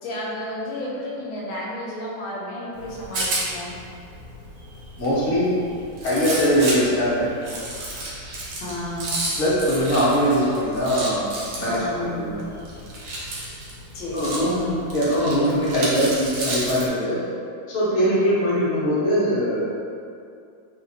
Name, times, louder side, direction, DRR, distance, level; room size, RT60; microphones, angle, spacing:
voice 1, 0.0-3.7 8.6-9.3 11.8-12.4 13.9-14.4 17.9-18.6, left 1 dB, 75° left, -6 dB, 1.3 m, -32 dB
Rattle, 2.7-16.9, right 1 dB, 75° right, 1.5 m, -32 dB
voice 2, 5.0-5.5 6.0-7.3 9.4-11.3 11.6-12.4 14.1-17.2 17.7-19.6, equal, 55° left, -9 dB, 0.8 m, -21 dB
3.3 x 2.4 x 2.7 m, 2.4 s
omnidirectional pair, 2.3 m